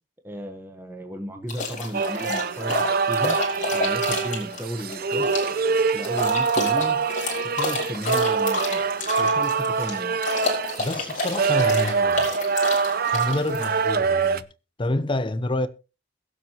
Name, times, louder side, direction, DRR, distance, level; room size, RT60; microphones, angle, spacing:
voice 1, 0.2-3.4 3.7-5.4 5.9-7.0 7.4-8.8 9.2-10.2, equal, 15° right, 1.2 m, -34 dB
sound 1, 1.5-14.0, left 3 dB, 45° left, 4.2 m, -30 dB
sound 2, 1.9-14.4, right 5 dB, 55° right, 0.6 m, -24 dB
voice 2, 10.8-12.3 13.1-14.5 14.8-15.7, left 1 dB, 30° left, 0.7 m, -27 dB
22.0 x 7.5 x 3.0 m
head